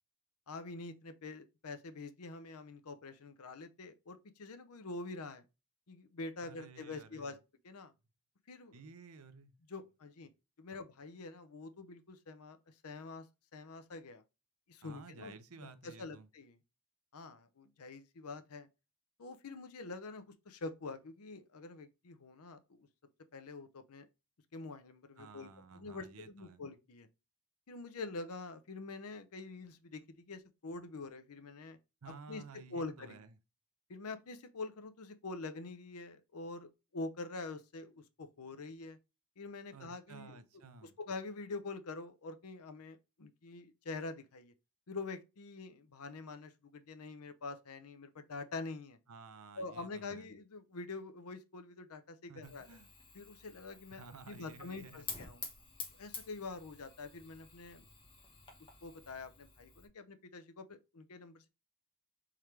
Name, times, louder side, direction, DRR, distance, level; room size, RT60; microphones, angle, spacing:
voice 1, 0.5-5.4 5.9-7.4 7.6-7.9 8.5-8.8 9.7-10.3 10.6-12.6 12.8-13.3 13.5-14.2 14.7-15.3 15.8-16.6 17.1-18.7 19.2-22.9 23.3-24.1 24.5-27.1 27.7-31.8 32.3-32.4 32.7-33.1 33.9-39.0 39.4-40.4 41.0-44.5 44.9-49.0 49.6-52.7 53.1-55.4 56.0-57.9 58.8-61.5, left 3 dB, 80° left, 0.7 m, -46 dB
voice 2, 6.4-7.4 8.7-9.5 10.7-10.8 14.8-16.3 25.2-26.6 32.0-33.4 39.7-41.0 49.1-50.3 52.3-52.9 53.9-55.1, right 4 dB, 75° right, 0.6 m, -54 dB
Fire, 52.4-59.9, left 4 dB, 25° left, 1.1 m, -50 dB
4.5 x 3.7 x 3.2 m
head